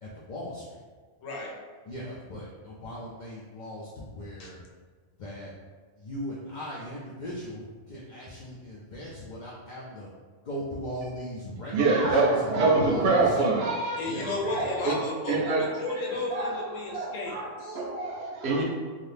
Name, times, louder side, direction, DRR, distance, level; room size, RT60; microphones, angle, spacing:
voice 1, 0.0-0.8 1.9-4.6 5.2-5.5 6.0-10.1 10.4-13.4 14.0-14.3, equal, 65° left, -6 dB, 0.4 m, -38 dB
voice 2, 1.2-1.5 4.4-4.5 14.0-17.8, left 2 dB, 85° left, -1 dB, 1.0 m, -33 dB
voice 3, 11.7-15.0 15.3-15.7 16.1-16.6 16.9-18.6, right 3 dB, 65° right, -2 dB, 0.7 m, -26 dB
2.7 x 2.5 x 3.3 m, 1.5 s
omnidirectional pair, 1.3 m